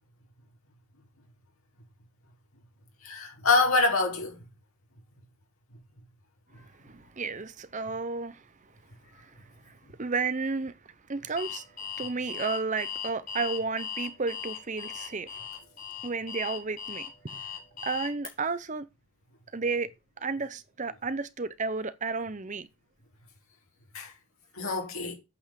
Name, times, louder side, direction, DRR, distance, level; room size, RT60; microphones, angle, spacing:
voice 1, 3.0-4.4 9.8-9.9 23.9-24.1 24.5-25.1, left 3 dB, 75° left, 4.2 m, -26 dB
voice 2, 6.8-8.4 9.2-9.3 10.0-10.8 11.1-11.6 12.0-15.5 16.0-17.1 17.3-17.4 17.8-18.9 19.5-22.7, right 4 dB, 35° right, 0.7 m, -32 dB
Alarm, 11.4-18.3, left 8 dB, 35° left, 3.9 m, -38 dB
8.6 x 5.5 x 7.5 m
head